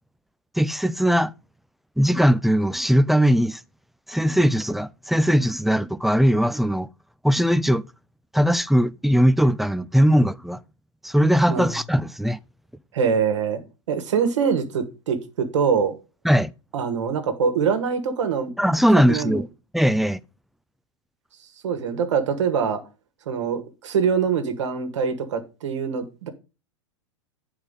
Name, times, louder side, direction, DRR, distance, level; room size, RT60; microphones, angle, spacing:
voice 1, 0.6-1.3 2.0-3.6 4.1-6.9 7.2-7.8 8.3-10.6 11.0-12.4 16.2-16.5 18.6-19.5 19.7-20.2, equal, ahead, 0.3 m, -19 dB
voice 2, 12.9-15.9 16.7-18.5 19.1-19.4 21.6-22.8 23.2-26.3, right 6 dB, 70° right, 1.7 m, -24 dB
9.5 x 4.7 x 5.3 m
hypercardioid pair, 95°, 16 cm